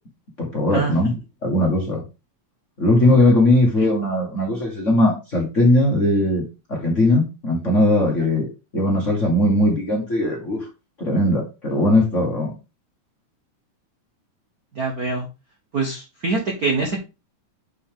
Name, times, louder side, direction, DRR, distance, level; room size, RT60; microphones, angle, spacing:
voice 1, 0.4-1.1 1.4-2.0 2.8-6.4 6.7-8.5 8.7-10.7 11.0-12.5, left 1 dB, 35° left, -1 dB, 1.4 m, -19 dB
voice 2, 14.7-15.3 15.7-17.0, right 3 dB, 60° right, 1 dB, 0.9 m, -24 dB
6.2 x 5.5 x 3.7 m, 0.28 s
omnidirectional pair, 3.4 m